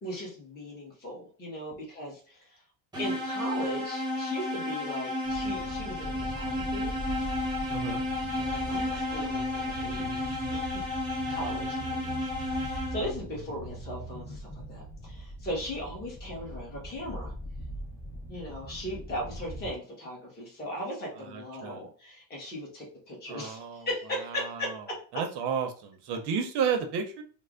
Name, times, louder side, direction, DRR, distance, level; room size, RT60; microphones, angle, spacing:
voice 1, 0.0-2.6 3.0-6.9 7.2-7.5 8.4-10.8 11.3-12.2 12.5-17.3 18.3-25.0, equal, 20° left, -3 dB, 1.0 m, -38 dB
sound 1, 2.9-13.3, left 1 dB, 10° right, 0.8 m, -32 dB
sound 2, 5.2-19.7, right 1 dB, 40° left, 1.1 m, -41 dB
voice 2, 7.7-8.0 21.3-21.8 23.3-23.9 24.3-24.7 25.1-27.2, right 6 dB, 55° right, 5 dB, 0.6 m, -32 dB
3.2 x 2.0 x 3.7 m, 0.40 s
cardioid pair, 155°, 48 cm